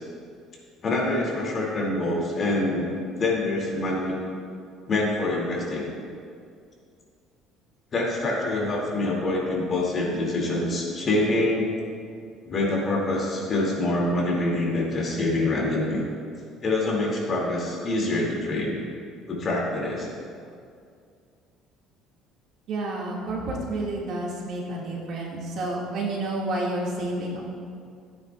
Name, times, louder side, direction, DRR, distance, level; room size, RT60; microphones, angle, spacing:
voice 1, 0.8-2.9 3.2-4.1 4.9-5.9 7.9-11.7 12.4-16.0 16.6-18.8 19.3-20.1, left 2 dB, 35° left, -3 dB, 2.5 m, -25 dB
voice 2, 22.7-27.4, right 2 dB, 55° right, -3 dB, 2.0 m, -30 dB
15.0 x 9.5 x 2.4 m, 2.3 s
cardioid pair, 140°, 0 cm